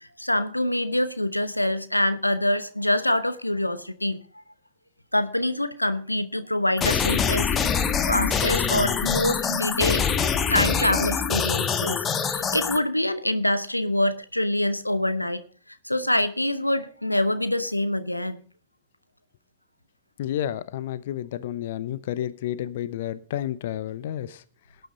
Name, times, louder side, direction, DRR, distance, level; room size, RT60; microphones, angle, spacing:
voice 1, 0.0-4.2 5.1-15.4 15.7-18.4, left 1 dB, 85° left, 0.8 m, -25 dB
sound 1, 6.8-12.8, left 6 dB, 25° left, 1.4 m, -24 dB
voice 2, 20.2-24.4, left 11 dB, 55° left, 0.8 m, -31 dB
17.5 x 9.3 x 3.9 m
figure-of-eight pair, 90°, 0 cm